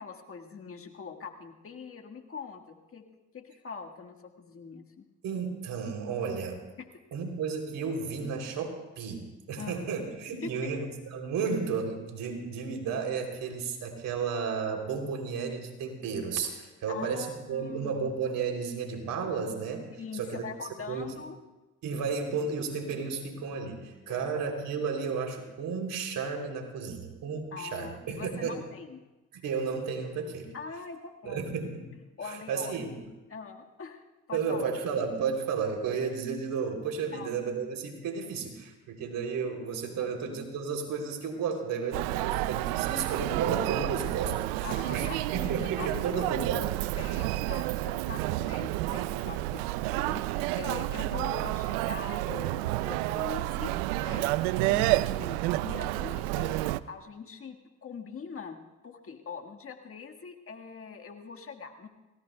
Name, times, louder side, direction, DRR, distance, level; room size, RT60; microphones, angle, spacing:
voice 1, 0.0-3.0 3.3-5.0 6.8-6.9 9.6-9.9 10.4-10.7 16.9-18.0 19.9-21.4 24.1-24.3 27.5-29.0 30.5-31.4 32.2-32.9 33.3-34.7 37.1-37.3 40.0-40.1 44.6-46.3 47.0-56.6 56.9-61.9, left 5 dB, 40° left, 3 dB, 1.6 m, -43 dB
voice 2, 5.2-6.6 7.1-19.9 20.1-20.4 20.9-21.1 21.8-28.6 29.4-30.5 31.2-31.9 32.2-33.0 34.3-46.6, right 5 dB, 65° right, 3 dB, 3.2 m, -33 dB
Human voice, 41.9-56.8, right 17 dB, 85° right, 0.5 m, -30 dB
28.0 x 17.5 x 2.3 m, 1.1 s
supercardioid pair, 70°, 35 cm